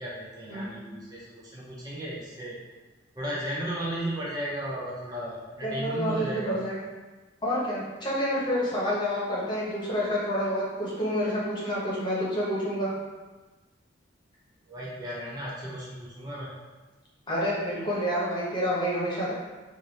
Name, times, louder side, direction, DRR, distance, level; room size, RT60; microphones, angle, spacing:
voice 1, 0.0-2.6 3.1-6.6 14.7-16.5, right 1 dB, 20° right, -6 dB, 0.6 m, -35 dB
voice 2, 5.6-6.7 7.4-12.9 17.3-19.3, equal, 25° left, -6 dB, 1.0 m, -28 dB
3.3 x 2.6 x 4.0 m, 1.2 s
head